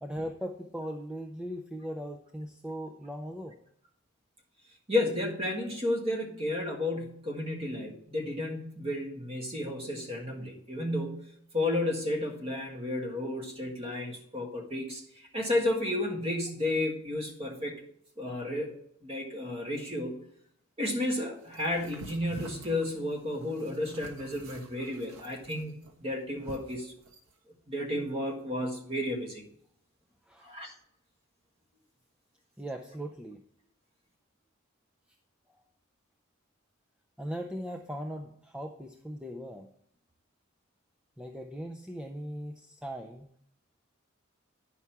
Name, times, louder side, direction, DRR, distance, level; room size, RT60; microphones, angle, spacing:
voice 1, 0.0-3.6 30.3-30.5 32.6-33.4 37.2-39.7 41.2-43.3, equal, 5° right, 3 dB, 0.4 m, -39 dB
voice 2, 4.9-15.0 15.3-17.7 18.2-18.7 19.0-20.2 20.8-25.7 26.0-26.9 27.7-29.4 30.4-30.7, left 1 dB, 25° right, 1 dB, 1.7 m, -32 dB
sound 1, 21.5-27.3, right 1 dB, 90° right, 1.3 m, -47 dB
9.7 x 5.7 x 4.7 m, 0.68 s
head